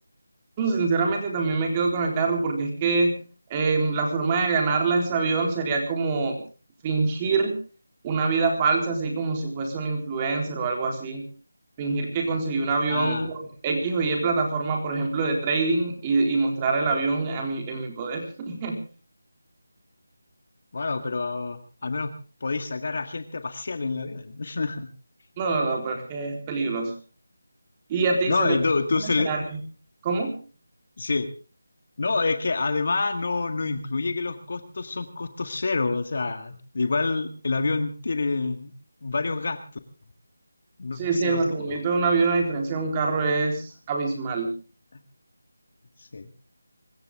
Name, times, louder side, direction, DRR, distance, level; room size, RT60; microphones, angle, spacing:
voice 1, 0.6-3.2 3.5-6.4 6.8-7.5 8.0-11.3 11.8-18.8 25.4-26.9 27.9-28.6 29.0-29.4 30.0-30.3 41.0-44.5, right 4 dB, 20° right, 2 dB, 3.9 m, -25 dB
voice 2, 12.9-13.3 20.7-22.1 22.4-24.9 28.3-29.3 31.0-31.3 32.0-38.7 39.0-39.6 40.8-41.8 44.9-45.0 46.0-46.3, left 3 dB, 50° left, 9 dB, 1.8 m, -27 dB
25.0 x 14.5 x 3.7 m, 0.36 s
figure-of-eight pair, 165°, 0 cm